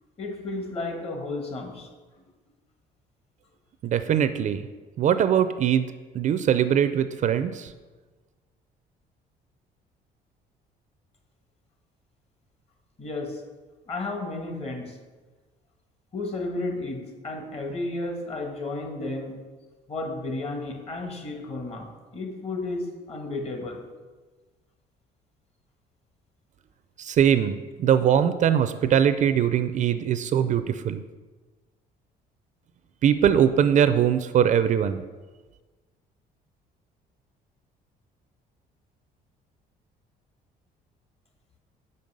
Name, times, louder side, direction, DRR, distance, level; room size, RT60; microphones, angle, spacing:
voice 1, 0.2-1.9 13.0-13.5 13.9-15.0 16.1-19.4 19.9-23.9, left 2 dB, 35° left, 3 dB, 1.5 m, -33 dB
voice 2, 3.8-4.6 5.0-5.8 6.1-7.7 27.0-31.0 33.0-35.0, right 9 dB, 45° right, 11 dB, 0.4 m, -21 dB
5.4 x 5.4 x 6.5 m, 1.3 s
cardioid pair, 110°, 17 cm